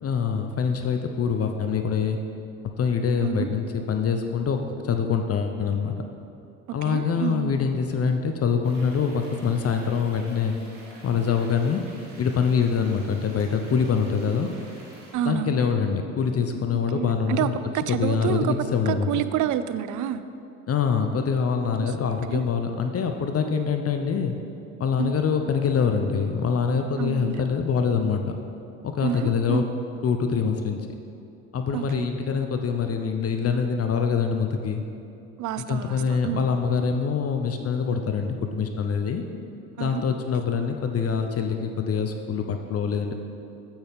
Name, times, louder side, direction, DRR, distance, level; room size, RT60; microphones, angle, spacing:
voice 1, 0.0-2.2 2.8-5.9 6.7-10.6 11.0-11.8 12.2-14.5 15.2-17.5 17.9-19.1 20.7-24.4 24.8-28.4 28.8-29.6 30.0-30.8 31.5-34.8 35.6-39.2 39.8-43.1, left 6 dB, 40° left, 5 dB, 0.7 m, -25 dB
voice 2, 6.7-7.5 15.1-15.6 16.9-18.6 18.9-20.2 21.8-21.9 22.3-22.4 25.0-25.1 27.0-27.4 29.0-29.7 31.7-32.1 35.4-36.4 39.8-40.0, right 10 dB, 55° right, 13 dB, 0.5 m, -28 dB
sound 1, 8.6-15.1, right 1 dB, 85° right, 1.7 m, -49 dB
8.8 x 7.9 x 3.6 m, 2.7 s
hypercardioid pair, 55°, 36 cm